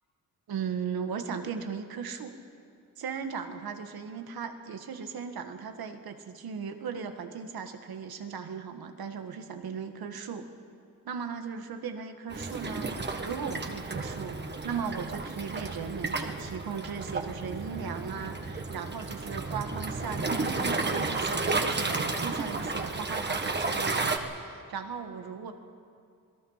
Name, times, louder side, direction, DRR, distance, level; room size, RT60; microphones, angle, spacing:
voice 1, 0.5-2.4 3.0-10.5 11.0-12.9 13.2-25.5, right 6 dB, 85° right, 7 dB, 1.8 m, -37 dB
Waves surf, 12.3-24.2, right 3 dB, 30° right, 1.6 m, -32 dB
26.5 x 19.0 x 5.8 m, 2.4 s
cardioid pair, 105°, 35 cm